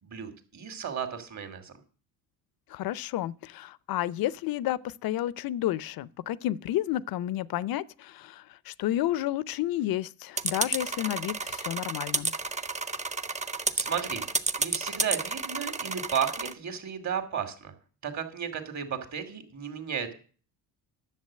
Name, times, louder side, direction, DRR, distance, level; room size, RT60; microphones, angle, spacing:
voice 1, 0.0-1.8 13.8-14.2 14.6-17.7 18.0-20.1, right 7 dB, 45° right, 2.6 m, -34 dB
voice 2, 2.7-12.3, left 13 dB, 60° left, 0.7 m, -31 dB
sound 1, 10.4-16.5, right 3 dB, 15° right, 0.9 m, -31 dB
11.0 x 7.2 x 7.5 m
supercardioid pair, 85°, 40 cm